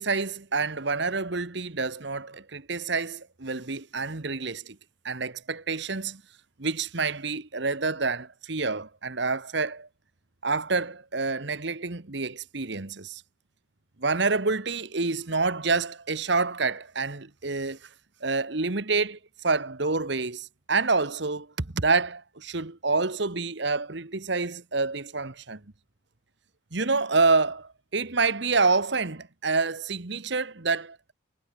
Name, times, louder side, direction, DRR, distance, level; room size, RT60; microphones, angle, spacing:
voice 1, 0.0-4.8 5.0-6.2 6.6-9.9 10.4-13.2 14.0-17.8 18.2-25.6 26.7-31.0, right 4 dB, 55° right, 1.3 m, -27 dB
head